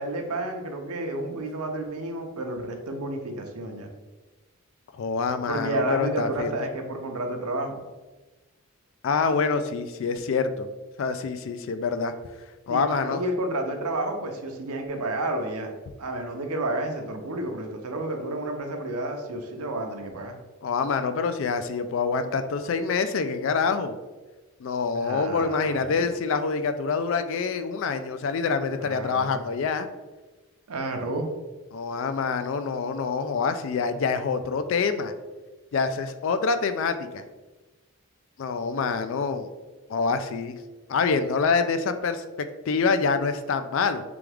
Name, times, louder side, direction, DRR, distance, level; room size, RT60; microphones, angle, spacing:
voice 1, 0.0-3.9 5.5-7.8 12.7-15.7 16.0-20.3 24.9-26.0 28.8-29.4 30.7-31.3, right 1 dB, 85° right, 4 dB, 0.7 m, -31 dB
voice 2, 4.9-6.5 9.0-10.7 11.0-12.1 12.7-13.2 20.6-24.0 24.6-29.9 31.7-35.1 35.7-37.2 38.4-39.5 39.9-40.6 40.9-44.0, left 5 dB, 60° left, 10 dB, 0.3 m, -26 dB
3.5 x 3.5 x 3.3 m, 1.2 s
head